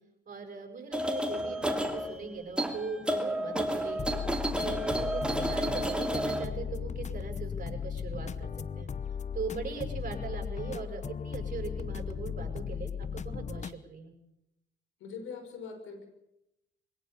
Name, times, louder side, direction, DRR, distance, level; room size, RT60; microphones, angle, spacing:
voice 1, 0.3-4.2 4.6-8.9 9.3-14.1, right 4 dB, 40° right, 3 dB, 7.4 m, -40 dB
sound 1, 0.9-6.5, equal, 5° right, 2.9 m, -31 dB
sound 2, 4.0-13.8, left 7 dB, 35° left, 0.9 m, -37 dB
voice 2, 15.0-16.1, left 5 dB, 90° left, 7 dB, 5.9 m, -42 dB
23.0 x 17.5 x 7.0 m, 0.84 s
cardioid pair, 90°, 20 cm